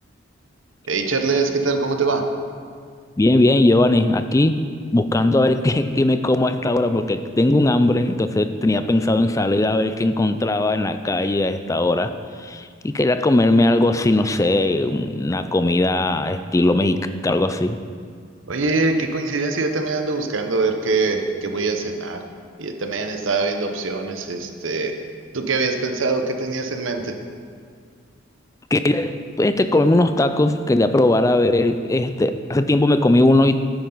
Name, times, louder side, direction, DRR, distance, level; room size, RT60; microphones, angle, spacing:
voice 1, 0.9-2.2 18.5-22.2 22.6-24.9 25.3-27.2, right 3 dB, 75° right, 5 dB, 1.0 m, -23 dB
voice 2, 3.2-17.8 28.7-33.6, left 1 dB, 15° left, 10 dB, 0.4 m, -19 dB
11.5 x 10.0 x 4.0 m, 2.1 s
head